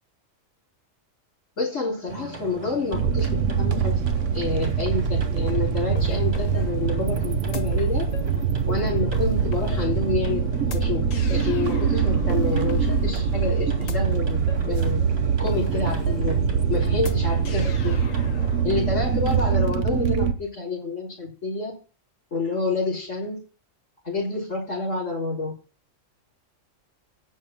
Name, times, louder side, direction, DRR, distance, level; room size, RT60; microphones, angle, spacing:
voice 1, 1.6-3.9 4.3-8.0 8.7-15.0 15.4-16.4 16.7-18.0 18.6-21.7 22.3-23.4 24.0-25.5, left 3 dB, 70° left, -5 dB, 4.1 m, -28 dB
sound 1, 2.1-19.6, right 3 dB, 50° right, 2.6 m, -39 dB
sound 2, 2.9-20.3, right 7 dB, 70° right, 1.2 m, -24 dB
sound 3, 6.0-18.6, equal, 90° left, 1.7 m, -35 dB
8.5 x 6.5 x 7.4 m, 0.34 s
omnidirectional pair, 1.3 m